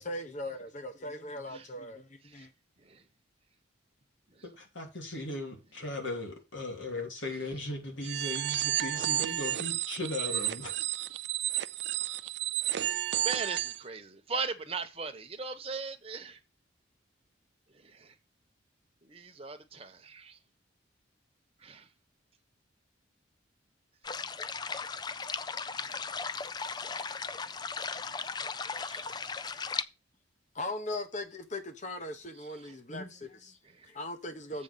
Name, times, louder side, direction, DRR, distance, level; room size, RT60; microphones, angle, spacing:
voice 1, 0.0-2.5 30.5-33.6 33.8-34.6, left 1 dB, 40° left, 1.2 m, -39 dB
voice 2, 4.6-10.7, left 2 dB, 75° left, 3.1 m, -37 dB
sound 1, 8.0-13.8, right 13 dB, 60° right, 0.4 m, -32 dB
voice 3, 12.7-16.4 17.7-18.1 19.0-20.4 21.6-21.9 26.8-27.1 28.7-29.2 32.6-32.7 33.8-33.9, right 4 dB, 30° right, 1.1 m, -40 dB
sound 2, 24.0-29.8, left 5 dB, 20° left, 0.4 m, -37 dB
7.6 x 4.9 x 6.8 m
head